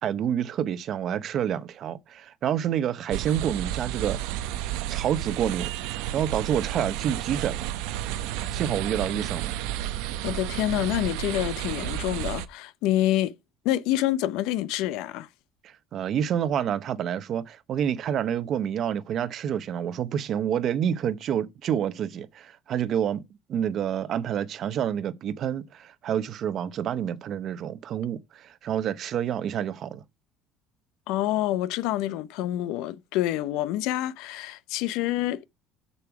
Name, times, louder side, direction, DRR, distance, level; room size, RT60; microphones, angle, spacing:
voice 1, 0.0-4.2 4.9-5.7 6.1-7.7 8.5-9.5 15.6-23.2 23.5-30.0, right 9 dB, 45° right, 0.8 m, -28 dB
sound 1, 3.1-12.5, right 13 dB, 85° right, 0.8 m, -32 dB
voice 2, 9.9-13.3 13.6-15.3 31.1-35.5, left 14 dB, 75° left, 0.6 m, -27 dB
7.0 x 6.8 x 4.7 m
cardioid pair, 145°, 0 cm